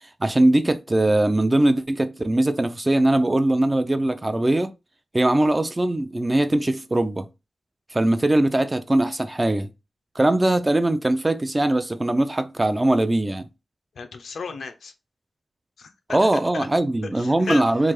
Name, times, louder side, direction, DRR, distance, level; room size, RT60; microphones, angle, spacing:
voice 1, 0.2-4.7 5.1-7.3 7.9-9.7 10.2-13.5 16.1-17.9, right 1 dB, 20° right, 0.3 m, -21 dB
voice 2, 13.9-14.9 15.8-16.7 17.1-17.9, left 4 dB, 90° left, 0.5 m, -35 dB
3.2 x 2.5 x 3.5 m
wide cardioid pair, 115°, 0 cm